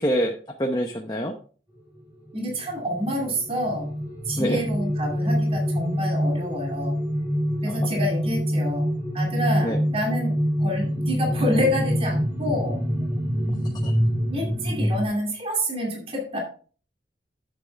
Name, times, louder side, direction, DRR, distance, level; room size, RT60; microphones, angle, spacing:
voice 1, 0.0-1.3 4.4-4.6 7.7-7.9 9.6-9.8 13.8-13.9, equal, 20° left, 2 dB, 0.8 m, -26 dB
sound 1, 2.3-15.0, equal, 10° right, 3.0 m, -26 dB
voice 2, 2.3-3.9 4.2-7.0 7.6-8.9 9.1-10.3 10.6-12.8 14.3-16.4, equal, 30° right, 0 dB, 2.6 m, -28 dB
10.0 x 7.7 x 3.4 m, 0.41 s
head